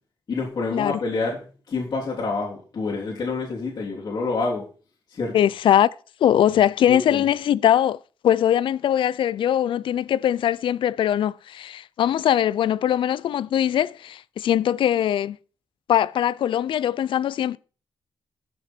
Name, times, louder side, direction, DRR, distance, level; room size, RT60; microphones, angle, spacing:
voice 1, 0.3-4.6 5.1-5.3 6.9-7.2, left 3 dB, 50° left, 3.3 m, -28 dB
voice 2, 5.3-5.9 6.2-8.0 8.2-15.4 15.9-17.6, left 10 dB, 85° left, 0.4 m, -21 dB
14.0 x 6.3 x 4.5 m
wide cardioid pair, 120°, 9 cm